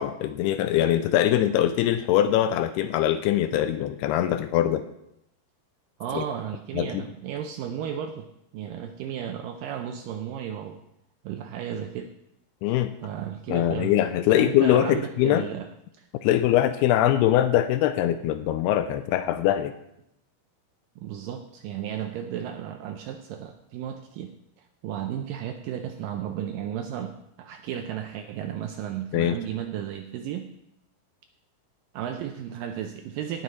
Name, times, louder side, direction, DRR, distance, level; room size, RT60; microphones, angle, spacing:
voice 1, 0.0-4.9 6.1-6.2 6.7-7.0 12.6-12.9 13.5-15.5 16.2-19.7 29.1-29.4, left 12 dB, 85° left, 10 dB, 2.5 m, -22 dB
voice 2, 6.0-8.3 8.5-10.8 11.2-12.1 13.0-13.9 14.3-15.7 16.0-16.1 21.0-24.3 24.6-30.5 31.9-33.4, right 9 dB, 90° right, 6 dB, 1.9 m, -34 dB
17.5 x 6.3 x 4.1 m, 0.79 s
omnidirectional pair, 4.6 m